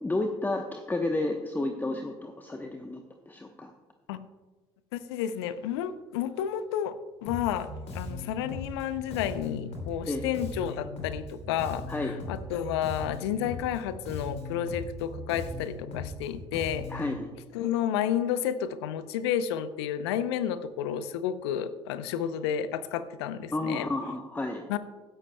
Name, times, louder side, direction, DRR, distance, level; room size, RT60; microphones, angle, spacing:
voice 1, 0.0-3.7 10.1-10.3 11.9-12.1 16.9-17.3 23.5-24.6, left 2 dB, 15° left, 4 dB, 0.9 m, -31 dB
voice 2, 4.9-16.9 17.5-23.9 24.7-24.8, left 9 dB, 75° left, 14 dB, 0.6 m, -31 dB
Bass guitar, 7.3-17.1, left 2 dB, 50° left, 2.9 m, -39 dB
15.5 x 11.0 x 2.2 m, 1.2 s
hypercardioid pair, 55°, 14 cm